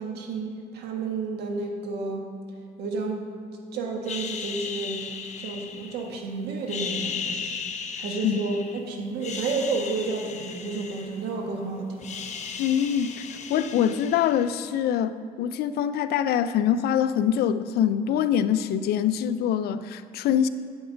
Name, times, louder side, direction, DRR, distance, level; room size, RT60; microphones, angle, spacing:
voice 1, 0.0-2.3 2.8-3.2 3.7-5.0 5.4-7.6 8.0-12.1, right 3 dB, 75° right, 2 dB, 1.5 m, -31 dB
sound 1, 4.1-6.2 6.6-8.8 9.1-11.5 11.8-14.7, left 6 dB, 45° left, 0.8 m, -36 dB
voice 2, 12.6-20.5, left 9 dB, 70° left, 13 dB, 0.5 m, -24 dB
8.2 x 8.0 x 5.1 m, 2.2 s
cardioid pair, 110°, 17 cm